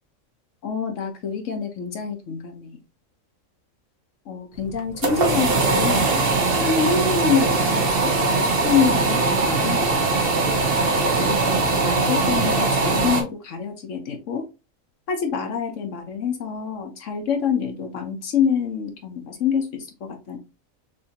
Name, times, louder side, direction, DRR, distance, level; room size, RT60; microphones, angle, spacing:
voice 1, 0.6-2.8 4.3-6.2 6.6-10.3 11.2-14.4 15.1-20.4, left 6 dB, 65° left, 5 dB, 1.1 m, -26 dB
sound 1, 4.7-13.2, right 3 dB, 50° right, 1.1 m, -21 dB
6.4 x 2.7 x 2.8 m, 0.28 s
omnidirectional pair, 1.4 m